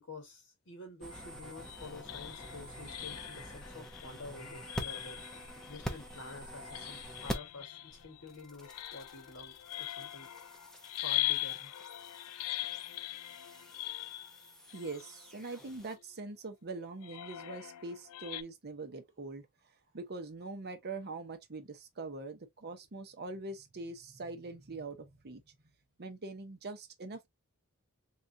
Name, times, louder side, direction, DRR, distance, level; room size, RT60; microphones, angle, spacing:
voice 1, 0.0-5.2 5.7-10.3 11.0-11.7, left 3 dB, 60° left, 1.7 m, -49 dB
sound 1, 1.0-7.6 7.9-16.0, equal, 5° left, 0.7 m, -47 dB
sound 2, 1.1-16.0 17.0-18.4, left 15 dB, 80° left, 0.4 m, -41 dB
voice 2, 14.7-19.5 19.9-25.6 26.0-27.3, right 3 dB, 50° right, 0.8 m, -43 dB
3.7 x 3.0 x 2.7 m
head